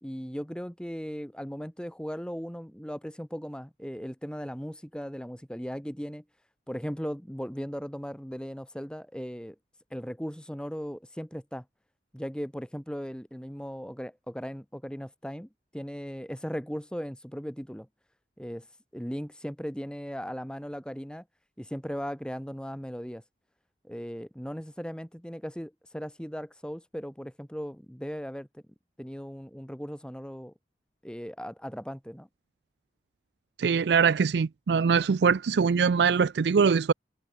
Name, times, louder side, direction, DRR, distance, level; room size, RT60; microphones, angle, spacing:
voice 1, 0.0-6.2 6.7-9.6 9.9-11.6 12.1-17.9 18.4-18.7 18.9-21.2 21.6-23.2 23.8-28.6 29.0-30.5 31.0-32.3, equal, 5° left, 2.0 m, -37 dB
voice 2, 33.6-36.9, right 6 dB, 75° right, 0.4 m, -23 dB
head